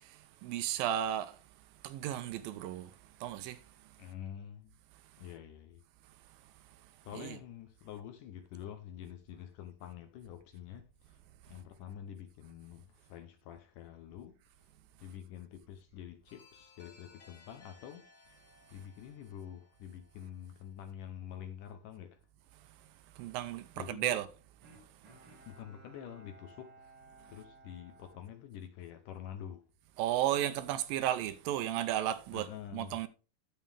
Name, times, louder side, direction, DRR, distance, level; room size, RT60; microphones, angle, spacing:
voice 1, 0.4-1.4 1.8-2.9 3.2-3.6 7.2-7.4 23.2-24.3 30.0-32.5 32.7-33.1, right 12 dB, 80° right, 2.3 m, -33 dB
voice 2, 4.0-4.7 5.2-5.8 7.0-11.2 11.5-14.4 15.0-18.4 18.7-22.2 23.8-24.2 25.5-26.9 27.3-29.6 32.3-33.0, left 10 dB, 75° left, 2.0 m, -47 dB
sound 1, 16.3-21.0, left 3 dB, 30° left, 2.7 m, -62 dB
Bowed string instrument, 24.6-29.1 29.6-29.7, right 3 dB, 45° right, 2.3 m, -58 dB
11.0 x 7.4 x 3.4 m
omnidirectional pair, 4.4 m